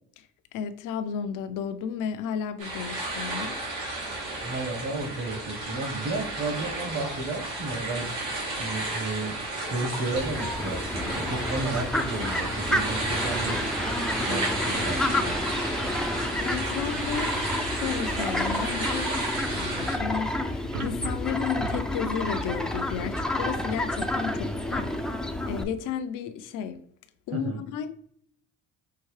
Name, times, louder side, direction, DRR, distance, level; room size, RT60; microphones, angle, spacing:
voice 1, 0.5-3.6 16.4-17.3 17.7-19.2 19.5-24.9 25.5-26.8 27.3-27.9, left 7 dB, 75° left, 0.6 m, -33 dB
sound 1, 2.6-20.0, right 2 dB, 90° right, 1.7 m, -32 dB
voice 2, 4.4-8.1 8.5-13.6 14.2-15.4 27.3-27.6, right 2 dB, 45° right, 1.2 m, -33 dB
Fowl, 10.1-25.6, left 1 dB, ahead, 0.3 m, -30 dB
sound 2, 20.7-24.0 24.5-24.6, right 4 dB, 70° right, 0.5 m, -40 dB
5.8 x 2.8 x 3.1 m
cardioid pair, 95°, 31 cm